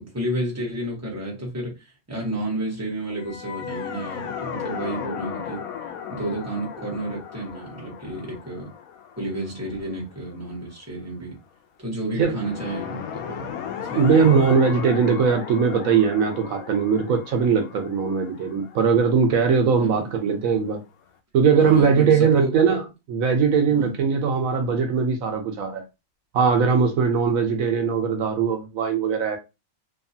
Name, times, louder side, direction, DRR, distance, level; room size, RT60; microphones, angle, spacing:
voice 1, 0.0-8.7 9.2-11.4 11.8-13.5 13.8-14.5 19.8-20.1 21.6-22.5 23.7-24.0, right 1 dB, 10° right, 1.0 m, -31 dB
sound 1, 3.1-10.3 12.2-20.0, left 8 dB, 80° left, 1.0 m, -36 dB
voice 2, 14.0-20.8 21.3-22.8 23.1-25.8 26.3-29.4, right 6 dB, 75° right, 1.0 m, -20 dB
2.8 x 2.3 x 2.6 m
omnidirectional pair, 1.5 m